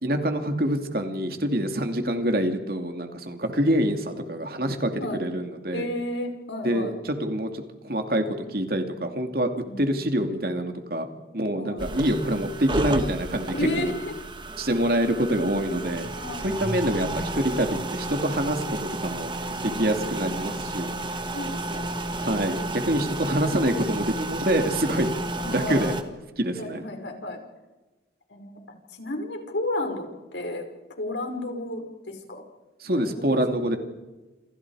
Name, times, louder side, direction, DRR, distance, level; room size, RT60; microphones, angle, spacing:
voice 1, 0.0-5.9 6.6-7.5 7.8-9.5 9.8-11.1 11.3-13.9 14.6-16.1 16.4-20.9 22.2-25.1 25.4-25.9 26.4-26.8 32.8-33.8, right 1 dB, 55° right, 5 dB, 2.6 m, -26 dB
voice 2, 5.7-7.0 9.6-9.9 11.5-11.8 13.6-14.1 16.1-16.7 19.6-19.9 21.3-22.4 25.4-25.9 26.6-27.4 28.3-28.6 28.9-30.7 31.0-32.4 32.9-33.4, left 1 dB, 75° left, 4 dB, 5.4 m, -33 dB
sound 1, 11.8-26.0, right 2 dB, 25° right, 1.9 m, -32 dB
28.5 x 28.5 x 4.9 m, 1.1 s
head